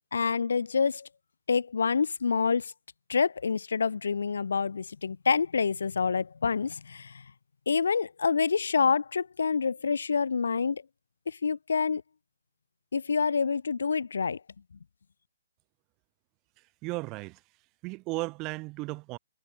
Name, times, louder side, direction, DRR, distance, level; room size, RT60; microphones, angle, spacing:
voice 1, 0.1-1.1 1.5-2.7 3.1-7.1 7.7-10.8 11.3-12.0 12.9-14.4, left 5 dB, 75° left, 1.6 m, -27 dB
voice 2, 16.8-17.4 17.8-19.2, right 24 dB, 25° right, 6.2 m, -35 dB
hypercardioid pair, 145°, 0 cm